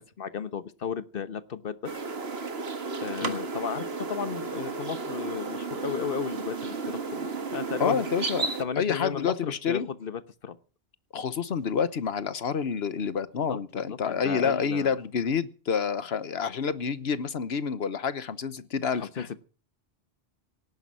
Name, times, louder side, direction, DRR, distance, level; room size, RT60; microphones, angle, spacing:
voice 1, 0.0-1.9 3.0-8.0 8.6-10.6 13.3-14.9 18.9-19.4, left 6 dB, 60° left, 13 dB, 1.3 m, -34 dB
sound 1, 1.8-8.6, right 4 dB, 80° right, 1.7 m, -33 dB
voice 2, 7.8-8.5 8.8-9.9 11.1-19.4, left 6 dB, 80° left, 15 dB, 1.3 m, -28 dB
18.0 x 9.9 x 6.2 m, 0.38 s
omnidirectional pair, 1.0 m